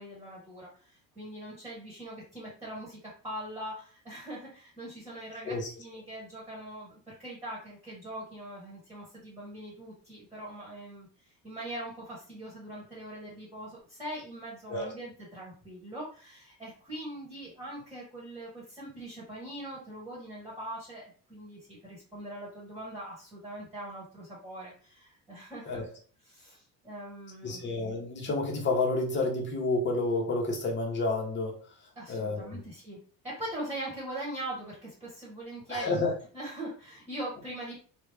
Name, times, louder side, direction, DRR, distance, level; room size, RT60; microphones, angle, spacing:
voice 1, 0.0-25.9 26.2-27.6 31.9-33.0 33.2-35.9 36.3-37.8, right 1 dB, 10° right, -6 dB, 1.4 m, -42 dB
voice 2, 27.4-31.5 32.1-32.6 35.7-36.1, left 2 dB, 30° left, 0 dB, 1.0 m, -30 dB
3.1 x 2.3 x 3.3 m, 0.42 s
cardioid pair, 135°, 36 cm